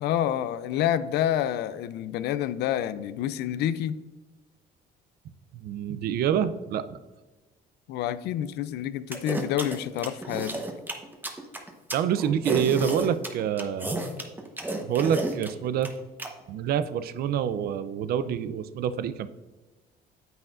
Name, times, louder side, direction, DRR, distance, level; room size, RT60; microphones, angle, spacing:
voice 1, 0.0-4.0 7.9-10.6, left 11 dB, 80° left, 15 dB, 0.5 m, -28 dB
voice 2, 5.5-6.8 11.9-13.9 14.8-15.9 16.5-19.3, right 9 dB, 65° right, 13 dB, 0.5 m, -27 dB
sound 1, 9.1-16.3, right 2 dB, 10° right, 1.0 m, -32 dB
9.3 x 7.7 x 2.5 m, 1.2 s
cardioid pair, 110°, 17 cm